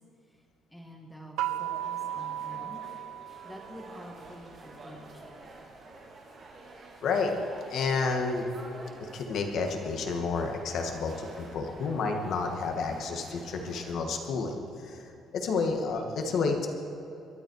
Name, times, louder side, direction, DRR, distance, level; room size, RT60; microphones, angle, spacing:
voice 1, 0.7-2.8 3.4-5.7 10.9-11.0 11.3-11.8, equal, 5° left, 0 dB, 2.2 m, -48 dB
sound 1, 1.4-14.0, right 2 dB, 35° right, 2.7 m, -49 dB
sound 2, 1.4-4.1, right 12 dB, 80° right, 0.4 m, -35 dB
voice 2, 7.0-7.4 7.7-8.4 9.1-11.1 11.5-15.0 15.3-16.7, left 4 dB, 55° left, 4 dB, 2.1 m, -30 dB
22.0 x 13.0 x 4.9 m, 2.9 s
cardioid pair, 160°, 0 cm